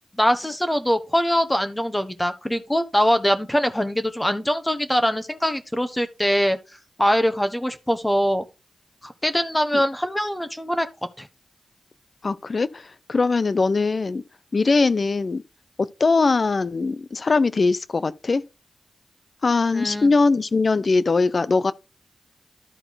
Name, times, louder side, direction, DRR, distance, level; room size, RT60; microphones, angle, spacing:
voice 1, 0.1-6.6 7.0-8.4 9.0-10.9 11.2-11.3 19.7-20.1, equal, 15° left, 1.2 m, -22 dB
voice 2, 12.2-12.8 13.1-14.2 14.5-15.4 15.8-18.4 19.4-21.7, left 3 dB, 55° left, 0.6 m, -21 dB
12.5 x 4.4 x 4.1 m
cardioid pair, 40°, 0 cm